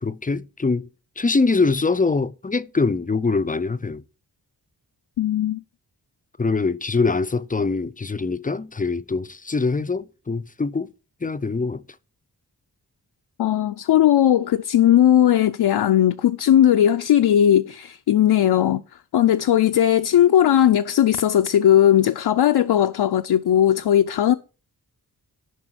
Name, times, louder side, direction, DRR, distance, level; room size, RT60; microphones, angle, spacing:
voice 1, 0.0-0.9 1.2-4.0 6.4-10.9 11.2-11.8, left 4 dB, 20° left, 0.4 m, -23 dB
voice 2, 5.2-5.6 13.4-18.8 19.1-24.3, left 11 dB, 75° left, 0.5 m, -17 dB
11.0 x 5.4 x 4.3 m
wide cardioid pair, 60°, 39 cm